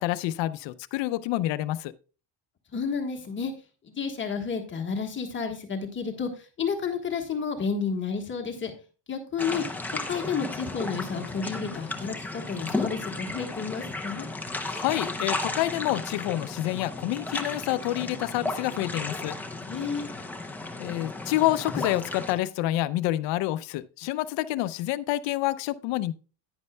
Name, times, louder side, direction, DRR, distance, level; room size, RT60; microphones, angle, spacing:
voice 1, 0.0-1.9 14.6-19.4 20.8-26.1, left 15 dB, 65° left, 0.7 m, -28 dB
voice 2, 2.7-3.5 3.8-8.7 9.1-14.3 19.6-20.1, left 5 dB, 25° left, 1.4 m, -31 dB
sound 1, 9.4-22.3, left 2 dB, 5° left, 0.6 m, -34 dB
10.5 x 9.9 x 2.2 m
cardioid pair, 160°, 47 cm